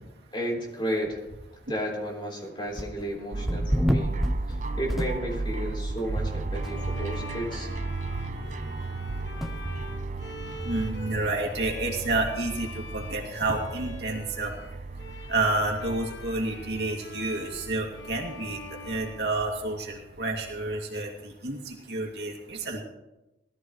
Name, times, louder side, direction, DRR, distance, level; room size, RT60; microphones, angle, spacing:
voice 1, 0.3-1.2 1.7-4.1 4.5-7.7, equal, 25° left, -2 dB, 3.7 m, -33 dB
sound 1, 2.7-3.1 3.5-5.6 6.0-6.1 6.6-6.7 7.0-7.1 7.5-7.6 9.4-9.5, equal, ahead, 0.8 m, -28 dB
sound 2, 3.3-20.8, right 3 dB, 45° right, 0.6 m, -35 dB
Bowed string instrument, 6.5-20.0, left 3 dB, 70° left, 1.2 m, -45 dB
voice 2, 10.6-14.5 15.3-18.6 18.8-22.8, right 2 dB, 65° right, -1 dB, 2.6 m, -30 dB
20.0 x 14.0 x 3.2 m, 0.99 s
head